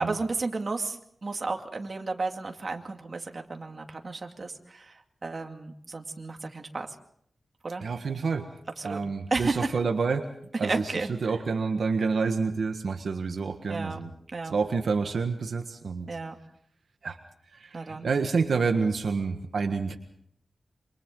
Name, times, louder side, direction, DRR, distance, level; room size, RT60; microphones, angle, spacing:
voice 1, 0.0-6.9 7.6-7.8 8.8-9.0 9.3-9.7 10.6-11.4 13.7-14.0 14.3-14.5 16.1-16.3 17.7-18.1, right 3 dB, 50° right, 4 dB, 2.3 m, -33 dB
voice 2, 7.8-8.5 8.8-10.3 10.6-10.8 11.2-14.1 14.4-16.1 17.0-17.2 17.5-20.0, right 4 dB, 85° right, 5 dB, 1.5 m, -28 dB
28.0 x 26.0 x 3.9 m, 0.67 s
wide cardioid pair, 85°, 0 cm